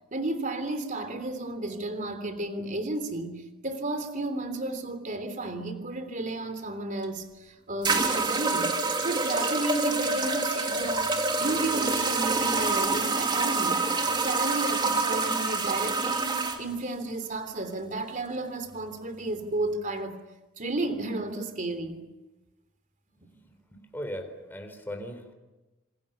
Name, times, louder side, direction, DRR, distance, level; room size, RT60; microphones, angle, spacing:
voice 1, 0.1-8.8 9.0-11.1 11.4-20.2 20.6-22.1, right 2 dB, 40° right, 3.3 m, -33 dB
sound 1, 7.0-7.1 7.8-16.6, right 3 dB, 20° right, 2.7 m, -27 dB
voice 2, 23.7-25.3, equal, 10° left, 3.9 m, -38 dB
28.5 x 27.0 x 7.0 m
head